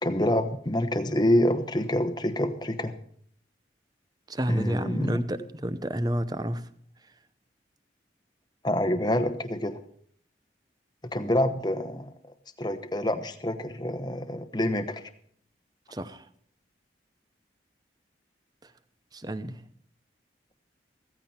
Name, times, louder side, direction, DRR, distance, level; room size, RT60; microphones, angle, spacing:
voice 1, 0.0-2.9 4.5-5.2 8.6-9.8 11.0-12.1 12.6-15.0, left 1 dB, 25° left, 10 dB, 1.0 m, -27 dB
voice 2, 4.3-6.7 15.9-16.3 18.6-18.7 19.1-19.6, equal, 20° right, 13 dB, 0.8 m, -30 dB
15.0 x 15.0 x 4.4 m, 0.63 s
head